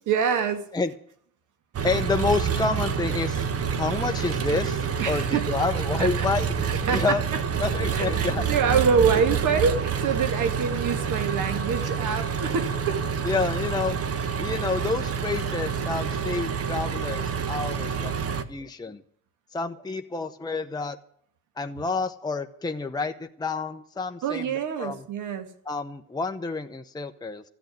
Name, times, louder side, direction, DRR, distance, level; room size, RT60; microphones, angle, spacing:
voice 1, 0.1-0.7 5.0-5.5 6.0-6.3 6.8-7.2 7.9-13.0 24.2-25.5, right 6 dB, 80° right, 9 dB, 2.2 m, -25 dB
Engine, 1.7-18.4, right 6 dB, 50° right, 1.3 m, -28 dB
voice 2, 1.8-3.4 3.8-6.5 6.9-7.2 7.6-8.4 12.4-12.5 13.2-14.0 14.4-19.0 19.5-21.0 21.6-24.5 24.8-25.0 25.7-27.4, left 4 dB, 15° left, 5 dB, 0.9 m, -29 dB
14.5 x 8.2 x 9.2 m, 0.66 s
cardioid pair, 90°, 30 cm